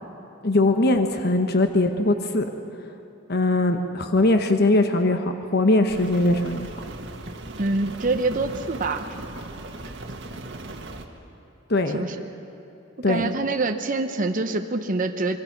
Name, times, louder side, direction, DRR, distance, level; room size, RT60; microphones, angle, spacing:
voice 1, 0.4-2.4 3.3-6.7 11.7-12.0 13.0-13.3, left 2 dB, 55° left, 6 dB, 1.1 m, -21 dB
Rain, 5.9-11.1, right 2 dB, 65° right, 1.8 m, -38 dB
voice 2, 7.6-9.1 11.9-12.2 13.1-15.4, right 3 dB, 45° right, 5 dB, 0.9 m, -25 dB
25.5 x 23.5 x 6.0 m, 2.9 s
head